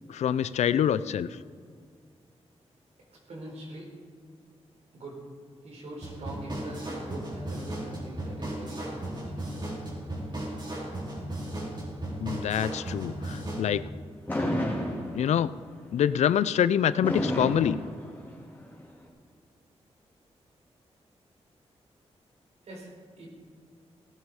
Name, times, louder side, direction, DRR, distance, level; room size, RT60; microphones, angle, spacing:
voice 1, 0.1-1.3 12.2-13.8 15.1-15.5 15.9-17.8, left 9 dB, 85° left, 16 dB, 0.4 m, -25 dB
voice 2, 3.3-3.9 4.9-5.2 5.6-9.2 22.6-23.3, right 1 dB, 75° right, -2 dB, 4.4 m, -43 dB
sound 1, 6.0-13.7, right 1 dB, 40° right, 4.0 m, -36 dB
Fireworks, 14.3-15.6 17.0-18.6, equal, 15° left, 3.5 m, -30 dB
16.5 x 12.5 x 4.9 m, 2.1 s
cardioid pair, 90°, 11 cm